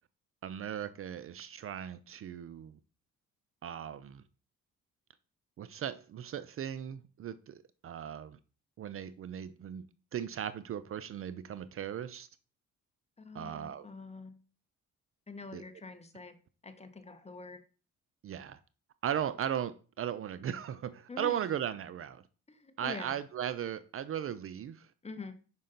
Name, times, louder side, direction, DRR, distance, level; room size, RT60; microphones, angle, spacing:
voice 1, 0.4-2.8 3.6-4.2 5.6-8.4 8.8-9.8 10.1-12.3 13.3-13.9 15.5-15.6 18.2-18.6 19.0-22.2 22.8-24.9, right 9 dB, 50° right, 0.4 m, -37 dB
voice 2, 13.2-14.4 15.3-16.4 16.6-17.6 21.1-21.4 22.5-23.2 25.0-25.3, left 4 dB, 20° left, 0.9 m, -45 dB
5.5 x 5.2 x 3.8 m
cardioid pair, 90°, 30 cm